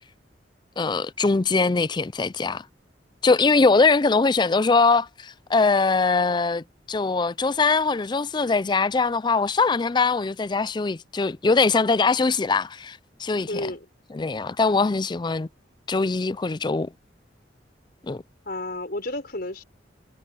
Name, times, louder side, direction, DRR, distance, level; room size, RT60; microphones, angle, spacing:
voice 1, 0.8-2.6 3.2-13.7 14.1-15.5 15.9-16.9 18.1-18.2, left 4 dB, 25° left, 0.4 m, -22 dB
voice 2, 13.5-13.9 18.5-19.6, left 1 dB, 55° left, 5.2 m, -31 dB
head